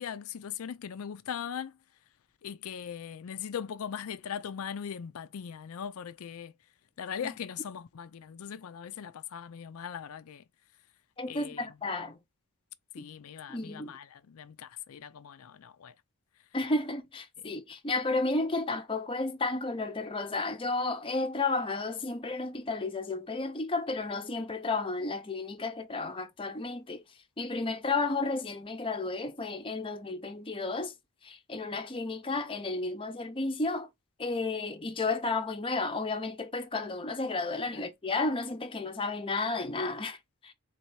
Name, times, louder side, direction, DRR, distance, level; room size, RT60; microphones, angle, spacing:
voice 1, 0.0-1.7 2.4-6.5 7.0-10.4 11.3-11.7 12.9-15.9 37.7-37.9, left 8 dB, 70° left, 0.4 m, -40 dB
voice 2, 11.2-12.2 13.0-13.1 13.5-13.9 16.5-27.0 27.4-30.9 31.2-33.9 34.2-40.2 40.4-40.5, left 3 dB, 25° left, 0.6 m, -32 dB
4.0 x 2.8 x 4.6 m
head